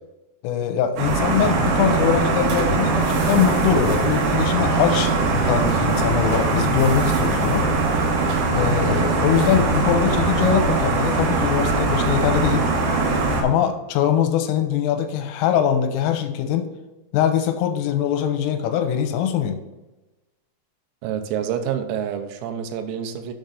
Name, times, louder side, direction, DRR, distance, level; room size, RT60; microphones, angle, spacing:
voice 1, 0.4-7.7 8.5-12.7 13.4-16.7 17.1-19.6, left 9 dB, 85° left, 7 dB, 3.3 m, -22 dB
sound 1, 1.0-13.4, right 3 dB, 70° right, 3.6 m, -21 dB
voice 2, 21.0-23.3, right 9 dB, 85° right, 6 dB, 3.5 m, -27 dB
7.9 x 6.1 x 4.0 m, 1.1 s
omnidirectional pair, 6.0 m